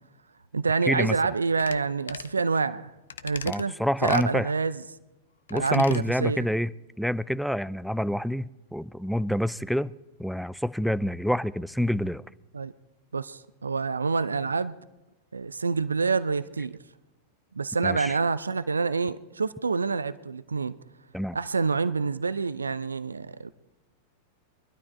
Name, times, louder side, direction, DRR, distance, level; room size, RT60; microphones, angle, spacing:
voice 1, 0.5-2.9 3.2-3.7 4.0-4.8 5.5-6.5 12.5-12.7 13.1-14.8 15.3-16.8 17.5-20.8 21.3-23.5, right 4 dB, 80° right, 0.5 m, -27 dB
sound 1, 1.6-1.8 2.1-2.4 3.1-3.6 4.0-4.3 5.5-6.0 6.4-6.5, left 8 dB, 70° left, 0.6 m, -40 dB
voice 2, 3.5-4.5 5.5-6.7 7.0-9.9 10.2-12.2 17.8-18.2 21.1-21.4, equal, ahead, 0.4 m, -27 dB
23.0 x 12.0 x 4.4 m
figure-of-eight pair, 95°, 0 cm